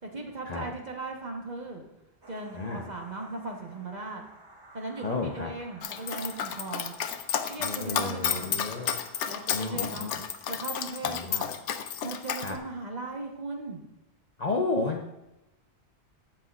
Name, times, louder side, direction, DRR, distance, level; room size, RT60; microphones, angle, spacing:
voice 1, 0.0-1.8 2.3-4.2 4.7-6.9 7.5-8.6 9.2-10.1 10.5-11.5 12.0-13.8, right 2 dB, 40° right, 1 dB, 1.2 m, -38 dB
sound 1, 2.2-9.3, right 2 dB, 25° right, 0.8 m, -53 dB
voice 2, 2.5-2.8 5.0-5.5 7.6-8.9 9.5-10.1 11.1-11.4 12.4-12.6 14.4-15.1, left 3 dB, 40° left, 1 dB, 0.7 m, -32 dB
Dog, 5.8-12.5, left 8 dB, 90° left, 0.9 m, -31 dB
16.0 x 5.6 x 2.4 m, 0.95 s
omnidirectional pair, 1.2 m